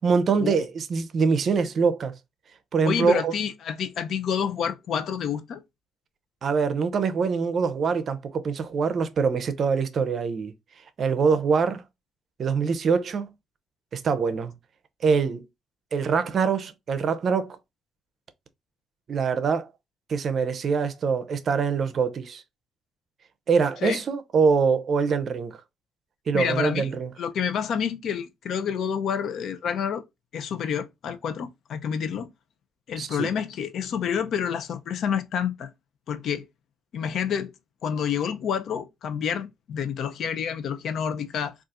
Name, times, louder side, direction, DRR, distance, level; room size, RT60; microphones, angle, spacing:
voice 1, 0.0-2.1 2.7-3.3 6.4-10.5 11.0-11.8 12.4-13.3 13.9-14.5 15.0-15.4 15.9-17.6 19.1-19.7 20.1-22.4 23.5-25.6 26.3-27.1 33.0-33.3, right 5 dB, 55° right, 0.5 m, -24 dB
voice 2, 2.9-5.6 23.8-24.0 26.3-26.9 27.2-30.0 30.3-32.3 32.9-35.7 36.1-36.5 36.9-37.5 37.8-41.5, left 7 dB, 70° left, 0.5 m, -28 dB
4.0 x 2.4 x 2.4 m
cardioid pair, 90°, 0 cm